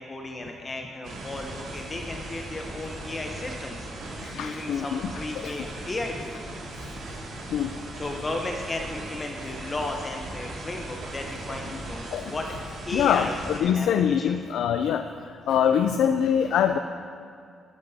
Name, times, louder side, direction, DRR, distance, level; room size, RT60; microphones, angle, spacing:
voice 1, 0.0-6.5 7.9-14.3, left 2 dB, 20° left, 2 dB, 0.7 m, -35 dB
sound 1, 1.0-13.6, right 2 dB, 80° right, 2.1 m, -38 dB
voice 2, 4.2-5.1 5.4-5.5 7.5-7.7 12.1-12.3 12.9-15.1 15.5-16.8, left 8 dB, 85° left, 8 dB, 0.4 m, -24 dB
13.0 x 12.0 x 2.7 m, 2.4 s
cardioid pair, 155°, 0 cm